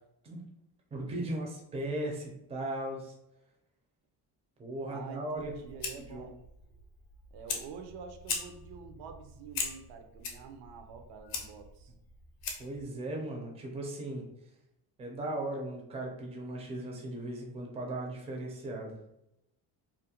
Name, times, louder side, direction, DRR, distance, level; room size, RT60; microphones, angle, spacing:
voice 1, 0.9-3.1 4.6-5.5 6.1-6.2 12.6-14.3 15.0-19.0, right 1 dB, 15° right, 0 dB, 0.4 m, -37 dB
voice 2, 4.9-6.4 7.3-11.9, right 6 dB, 75° right, 6 dB, 0.5 m, -47 dB
Fire, 5.3-12.8, left 5 dB, 60° left, 0.6 m, -41 dB
2.5 x 2.0 x 2.7 m, 0.82 s
cardioid pair, 140°, 41 cm